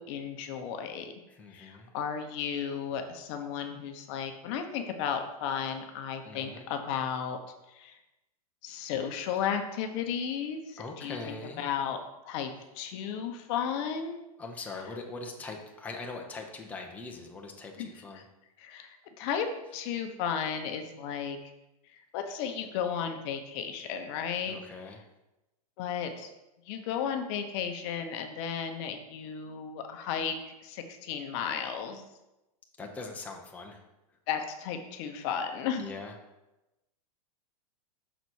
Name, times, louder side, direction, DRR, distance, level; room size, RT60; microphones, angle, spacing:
voice 1, 0.0-1.1 1.5-7.4 7.7-8.0 8.6-12.0 12.3-14.3 17.8-17.9 18.6-21.4 21.9-24.6 25.8-26.3 26.7-32.0 34.3-35.9, left 7 dB, 45° left, 6 dB, 0.9 m, -34 dB
voice 2, 1.3-1.9 6.2-6.7 10.8-11.7 14.4-18.3 24.5-25.0 32.8-33.8 34.1-34.2 35.8-36.2, left 3 dB, 5° left, 1 dB, 0.8 m, -42 dB
6.0 x 4.1 x 6.2 m, 0.97 s
hypercardioid pair, 135°, 20 cm